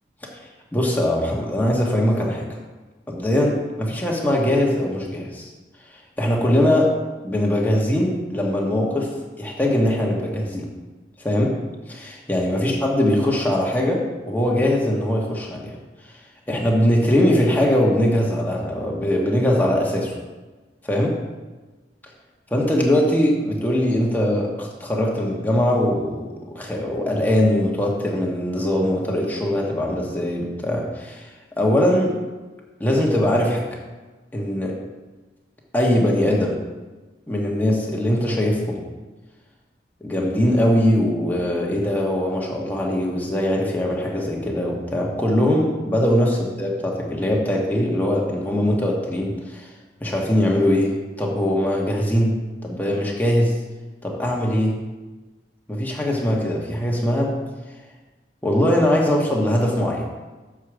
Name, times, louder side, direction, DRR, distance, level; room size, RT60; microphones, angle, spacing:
voice 1, 0.7-2.5 3.1-5.5 6.2-6.9 7.2-9.1 9.4-10.7 11.2-11.5 11.9-15.7 16.5-20.1 20.8-21.1 22.5-31.3 31.6-32.1 32.8-33.7 34.3-34.8 35.7-36.6 37.3-38.8 40.0-49.7 50.0-52.3 52.6-53.5 54.0-54.7 55.7-57.4 58.4-60.0, left 1 dB, 10° left, -2 dB, 1.3 m, -21 dB
7.3 x 4.8 x 6.1 m, 1.2 s
head